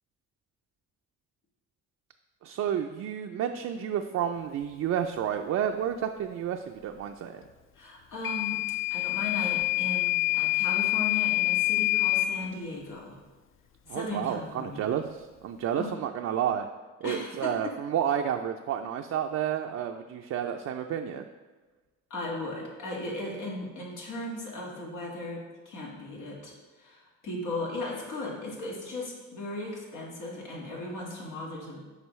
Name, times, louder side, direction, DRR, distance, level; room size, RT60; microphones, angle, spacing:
voice 1, 2.4-7.4 13.9-16.7 17.0-21.2, right 9 dB, 60° right, 4 dB, 0.4 m, -30 dB
voice 2, 7.8-8.6 8.9-13.2 13.9-14.8 15.8-15.9 17.0-17.5 22.1-25.4 25.7-31.8, left 2 dB, 85° left, -3 dB, 1.8 m, -37 dB
Microwave oven / Alarm, 8.2-12.3, left 18 dB, 45° left, 0.5 m, -26 dB
8.0 x 5.1 x 3.1 m, 1.3 s
cardioid pair, 90°, 30 cm